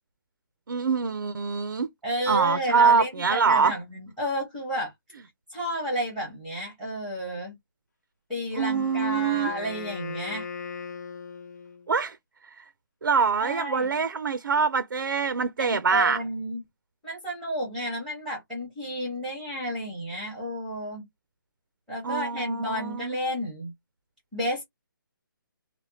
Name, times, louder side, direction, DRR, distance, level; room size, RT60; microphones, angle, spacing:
voice 1, 0.7-1.9 2.3-3.7 8.5-9.5 11.9-12.2 12.6-12.7 13.0-16.2 22.0-23.1, right 5 dB, 70° right, 0.5 m, -24 dB
voice 2, 2.0-4.9 5.5-7.5 8.3-10.4 13.4-13.9 15.6-16.6 17.0-21.0 21.9-23.7 24.3-24.6, equal, ahead, 0.8 m, -31 dB
Wind instrument woodwind instrument, 8.6-11.9, left 6 dB, 50° left, 0.7 m, -38 dB
3.3 x 2.1 x 2.7 m
hypercardioid pair, 175°, 12 cm